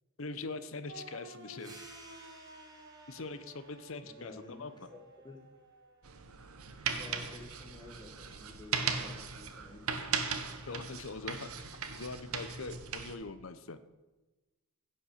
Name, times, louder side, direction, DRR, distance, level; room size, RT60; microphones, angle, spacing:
voice 1, 0.2-1.8 3.1-4.9 10.7-11.5 11.9-13.8, left 3 dB, 65° left, 12 dB, 0.8 m, -42 dB
sound 1, 0.9-6.6, right 2 dB, 55° right, 1.1 m, -54 dB
sound 2, 1.6-6.7, right 2 dB, 15° right, 1.9 m, -58 dB
voice 2, 4.0-4.9 5.2-5.5 6.9-10.3 10.6-10.8 13.0-13.1, left 2 dB, 20° left, 2 dB, 1.6 m, -52 dB
sound 3, 6.0-13.1, right 6 dB, 85° right, 1.1 m, -38 dB
16.0 x 5.5 x 6.6 m, 1.1 s
head